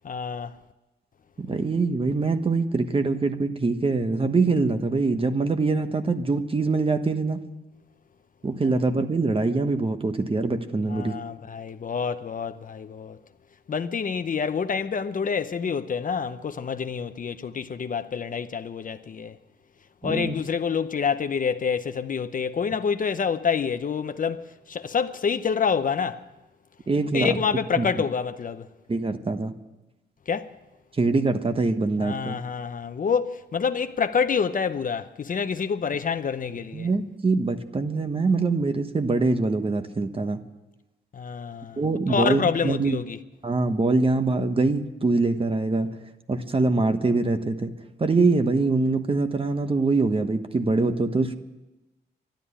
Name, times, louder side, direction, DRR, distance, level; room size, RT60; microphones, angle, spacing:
voice 1, 0.0-0.6 10.9-13.2 13.7-19.4 20.0-26.2 27.1-28.7 30.3-30.5 32.0-36.9 41.1-41.8 42.1-43.2, left 6 dB, 50° left, 0.7 m, -27 dB
voice 2, 1.4-7.4 8.4-11.1 20.0-20.3 26.9-27.4 27.8-27.9 28.9-29.6 31.0-32.3 36.7-40.4 41.8-43.0 43.4-45.9 46.3-47.7 48.0-51.3, right 3 dB, 30° right, 1.2 m, -24 dB
12.5 x 12.0 x 9.9 m
wide cardioid pair, 110°, 18 cm